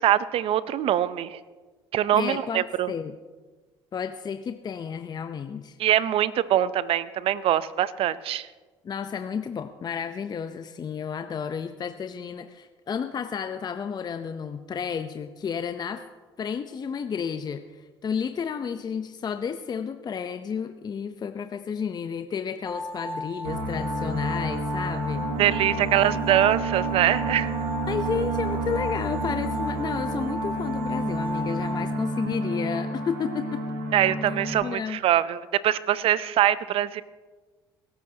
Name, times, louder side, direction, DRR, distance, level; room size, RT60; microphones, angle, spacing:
voice 1, 0.0-1.4 1.9-2.9 5.8-8.5 25.4-27.5 33.9-37.0, right 11 dB, 60° right, 17 dB, 0.6 m, -23 dB
voice 2, 2.1-3.2 3.9-5.8 8.8-16.0 16.4-25.3 27.9-33.6 34.6-35.0, left 6 dB, 40° left, 9 dB, 0.7 m, -32 dB
sound 1, 22.6-31.9, left 1 dB, 15° left, 1.6 m, -35 dB
sound 2, 23.4-34.5, right 2 dB, 85° right, 1.6 m, -30 dB
21.5 x 12.0 x 2.8 m, 1.3 s
hypercardioid pair, 65°, 11 cm